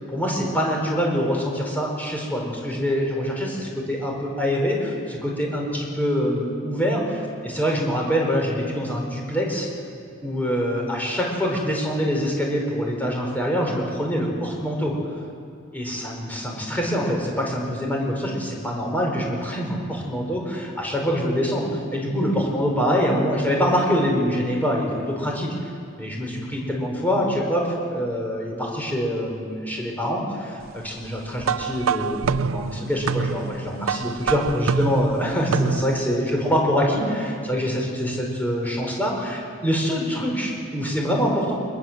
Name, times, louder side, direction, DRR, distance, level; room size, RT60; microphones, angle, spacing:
voice 1, 0.1-9.7 10.2-14.9 15.7-25.5 26.0-41.5, equal, 10° left, -1 dB, 5.0 m, -25 dB
sound 1, 31.4-36.1, right 6 dB, 90° right, 0.6 m, -26 dB
23.5 x 21.5 x 7.6 m, 2.3 s
head